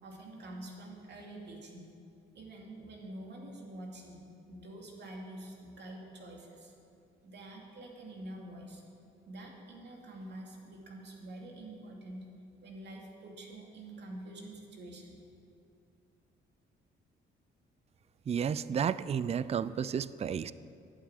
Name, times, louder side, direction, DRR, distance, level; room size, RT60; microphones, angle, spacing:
voice 1, 0.0-1.9 2.3-4.2 4.5-6.7 7.2-8.8 9.3-12.2 12.6-15.2, right 1 dB, 60° right, 0 dB, 2.6 m, -47 dB
voice 2, 18.3-20.5, right 7 dB, 35° right, 17 dB, 0.4 m, -32 dB
11.0 x 8.5 x 9.1 m, 2.5 s
cardioid pair, 90°, 20 cm